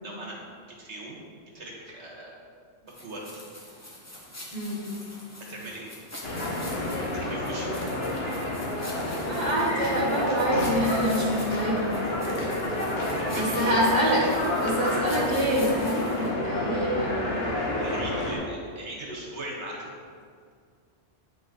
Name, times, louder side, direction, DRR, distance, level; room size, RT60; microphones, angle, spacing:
voice 1, 0.0-0.4 0.8-1.2 1.5-2.4 2.8-3.3 5.5-5.9 7.1-7.7 13.0-13.7 17.7-19.9, right 1 dB, 75° right, -3 dB, 1.7 m, -39 dB
sound 1, 2.9-16.3, left 1 dB, 15° left, 1.1 m, -44 dB
sound 2, 6.2-18.4, left 1 dB, 60° left, 1.3 m, -29 dB
voice 2, 9.2-11.9 13.3-14.2 14.6-17.2, equal, 40° right, -6 dB, 1.8 m, -26 dB
8.6 x 5.2 x 3.9 m, 2.1 s
omnidirectional pair, 1.2 m